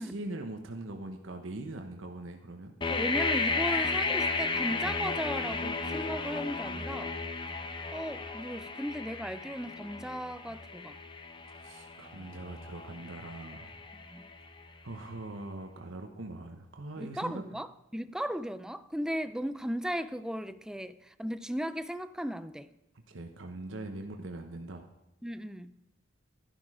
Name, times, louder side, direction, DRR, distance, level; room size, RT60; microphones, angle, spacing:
voice 1, 0.0-2.7 11.5-13.7 14.8-17.5 23.1-24.9, right 2 dB, 80° right, 4 dB, 1.1 m, -42 dB
sound 1, 2.8-14.6, left 4 dB, 25° left, 0.9 m, -34 dB
voice 2, 2.9-7.1 7.9-11.0 13.9-14.3 17.0-17.7 17.9-22.7 24.0-24.1 25.2-25.7, equal, 5° right, 12 dB, 0.5 m, -36 dB
12.0 x 12.0 x 4.9 m, 0.91 s
head